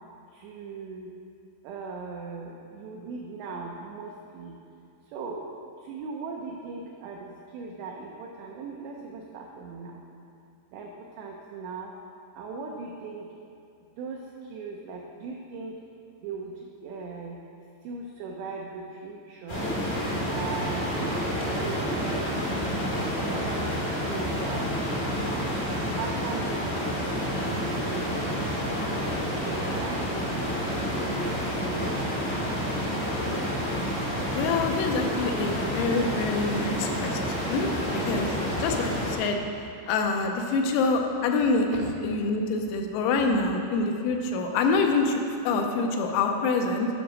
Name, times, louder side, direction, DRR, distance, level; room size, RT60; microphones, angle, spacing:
voice 1, 0.3-1.1 1.6-4.6 5.1-10.0 10.7-11.9 12.4-13.3 14.0-15.7 16.2-17.4 17.8-19.6 20.3-23.0 23.3-24.7 25.2-26.7 27.4-28.5 29.4-32.6 41.8-41.9, right 4 dB, 90° right, 0 dB, 2.5 m, -39 dB
sound 1, 19.5-39.1, equal, 75° left, 0.7 m, -29 dB
voice 2, 34.3-38.3 38.6-39.4 39.9-45.2 45.4-46.9, left 3 dB, 90° left, 3 dB, 3.4 m, -26 dB
10.0 x 5.9 x 6.1 m, 2.5 s
omnidirectional pair, 5.9 m